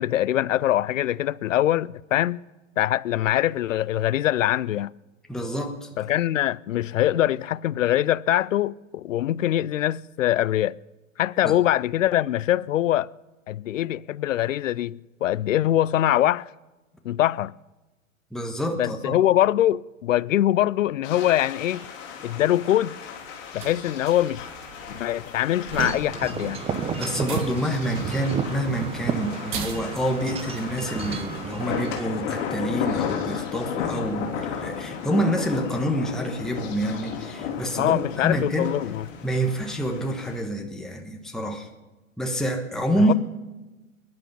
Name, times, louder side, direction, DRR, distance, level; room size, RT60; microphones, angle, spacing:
voice 1, 0.0-2.4 2.8-4.9 6.0-10.8 11.2-13.1 13.5-16.5 17.0-17.5 18.8-21.8 22.2-22.9 23.5-24.5 24.9-26.6 37.8-39.1 43.1-43.2, left 13 dB, 70° left, 0.5 m, -23 dB
voice 2, 5.3-5.9 11.4-11.6 18.3-19.2 27.0-38.7 39.2-41.7 42.2-43.1, equal, ahead, 1.2 m, -27 dB
sound 1, 21.0-40.4, left 7 dB, 40° left, 3.4 m, -34 dB
sound 2, 23.1-31.4, right 6 dB, 30° right, 2.2 m, -39 dB
Wind chime / Wind, 25.7-32.0, right 6 dB, 15° right, 1.0 m, -32 dB
22.0 x 10.5 x 5.4 m
hypercardioid pair, 110°, 40 cm